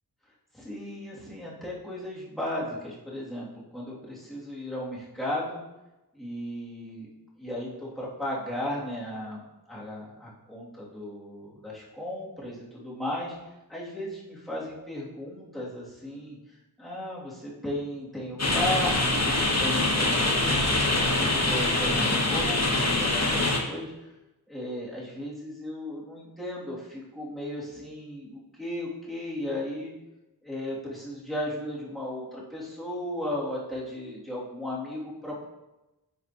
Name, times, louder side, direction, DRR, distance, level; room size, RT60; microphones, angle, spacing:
voice 1, 0.5-3.5 3.7-5.6 6.1-7.1 7.4-13.3 13.7-16.4 16.8-23.9 24.5-29.9 30.4-35.5, left 1 dB, ahead, -7 dB, 2.8 m, -35 dB
sound 1, 18.4-23.6, left 2 dB, 40° left, 1.3 m, -24 dB
11.0 x 5.7 x 3.1 m, 1.0 s
wide cardioid pair, 45°, 42 cm